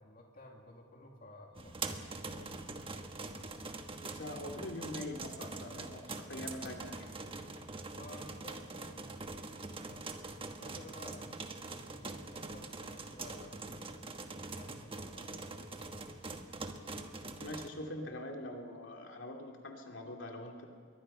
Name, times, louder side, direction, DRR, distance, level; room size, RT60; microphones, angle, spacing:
voice 1, 0.0-3.0 7.8-9.4 9.8-13.6 14.5-16.2, left 2 dB, 50° left, 0 dB, 2.6 m, -55 dB
sound 1, 1.6-17.7, right 3 dB, 30° right, 1.3 m, -44 dB
voice 2, 4.0-7.1 17.4-20.7, left 1 dB, 85° left, 2 dB, 2.7 m, -43 dB
26.0 x 22.5 x 5.6 m, 2.1 s
head